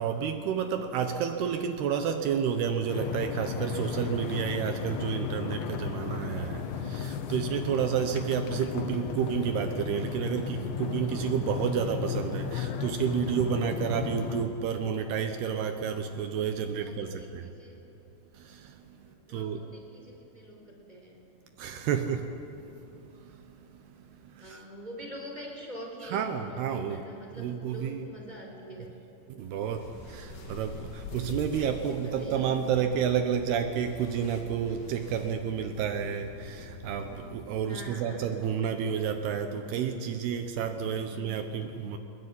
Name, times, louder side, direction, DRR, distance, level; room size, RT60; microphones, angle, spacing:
voice 1, 0.0-17.5 18.3-19.0 19.3-19.6 21.6-22.8 23.1-24.6 26.0-27.0 27.4-28.1 29.3-42.0, right 7 dB, 75° right, 7 dB, 2.9 m, -30 dB
sound 1, 2.9-14.5, left 7 dB, 85° left, 3.6 m, -34 dB
voice 2, 16.7-17.8 19.0-21.2 24.4-28.9 30.2-30.8 31.6-32.8 37.7-38.3 41.1-41.7, equal, 10° right, 0 dB, 4.7 m, -45 dB
sound 2, 29.6-37.4, left 3 dB, 50° left, 4.2 m, -45 dB
21.5 x 21.0 x 9.9 m, 2.9 s
omnidirectional pair, 4.9 m